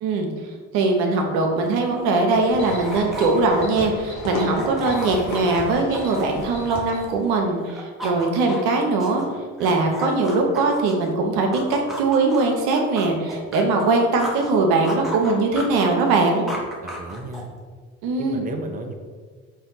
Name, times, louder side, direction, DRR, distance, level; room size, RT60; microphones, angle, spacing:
voice 1, 0.7-9.2 9.6-16.5 18.0-18.4, right 3 dB, 70° right, 2 dB, 0.8 m, -21 dB
sound 1, 1.5-7.3 7.6-11.1 11.5-14.5 14.8-17.6, equal, ahead, 1.0 m, -35 dB
sound 2, 2.3-7.2, equal, 55° left, 1.3 m, -34 dB
voice 2, 16.8-17.5 18.2-18.9, right 3 dB, 20° right, 3 dB, 0.6 m, -33 dB
4.2 x 2.7 x 3.8 m, 1.5 s
hypercardioid pair, 55°, 38 cm